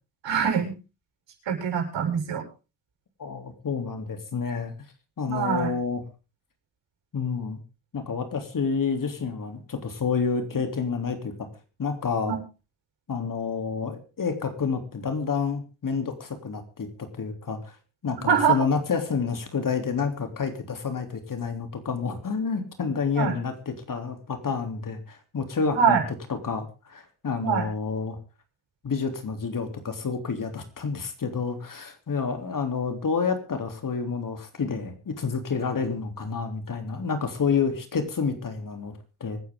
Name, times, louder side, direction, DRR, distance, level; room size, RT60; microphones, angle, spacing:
voice 1, 0.2-0.7 1.5-2.4 5.3-5.7 12.3-12.4 18.3-18.6 23.2-23.3 25.7-26.0 27.4-27.6, right 7 dB, 65° right, 2 dB, 7.3 m, -23 dB
voice 2, 3.2-4.7 5.2-6.0 7.1-7.6 7.9-11.5 11.8-12.3 13.1-17.7 18.0-26.0 26.3-28.2 28.8-39.4, left 5 dB, 40° left, 6 dB, 3.4 m, -29 dB
25.5 x 9.6 x 3.8 m, 0.33 s
supercardioid pair, 70°, 47 cm